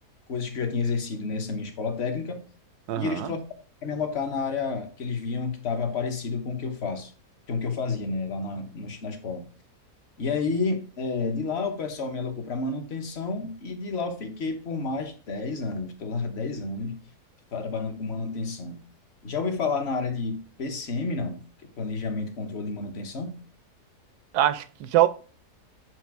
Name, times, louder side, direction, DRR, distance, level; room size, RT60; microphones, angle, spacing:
voice 1, 0.3-2.4 3.0-3.4 3.8-7.1 7.5-9.5 10.2-17.0 17.5-18.8 19.2-21.4 21.8-23.4, left 4 dB, 45° left, 1.1 m, -30 dB
voice 2, 2.9-3.3 24.3-25.1, right 13 dB, 80° right, 1.1 m, -23 dB
7.7 x 2.7 x 4.5 m
omnidirectional pair, 1.7 m